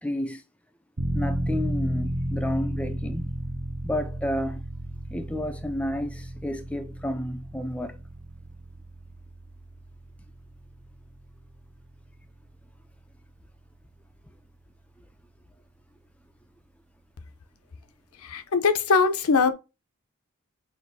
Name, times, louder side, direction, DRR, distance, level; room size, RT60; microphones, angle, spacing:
voice 1, 0.0-0.4 1.1-3.4 3.8-4.6 5.1-8.0, left 1 dB, 5° left, 0.3 m, -31 dB
sound 1, 1.0-13.5 13.8-13.9, right 1 dB, 35° right, 0.6 m, -33 dB
voice 2, 18.2-19.5, left 5 dB, 75° left, 0.6 m, -21 dB
5.9 x 2.5 x 2.6 m
head